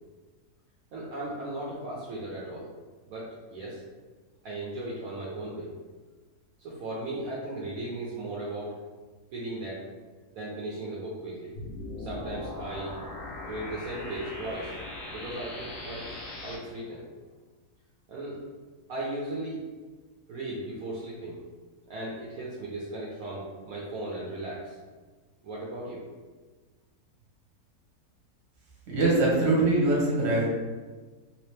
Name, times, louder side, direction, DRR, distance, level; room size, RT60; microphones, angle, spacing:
voice 1, 0.9-2.7 3.1-3.8 4.4-5.7 6.6-8.8 9.3-9.8 10.3-11.5 12.0-13.0 13.5-14.7 15.1-17.0 18.1-18.4 18.9-19.6 20.3-21.4 21.9-24.8 25.4-26.0, right 1 dB, 65° right, -5 dB, 1.1 m, -36 dB
sound 1, 11.6-16.6, left 2 dB, 80° left, 1.3 m, -39 dB
voice 2, 28.9-30.5, right 2 dB, 45° right, -4 dB, 1.2 m, -23 dB
3.4 x 2.9 x 3.2 m, 1.3 s
omnidirectional pair, 1.7 m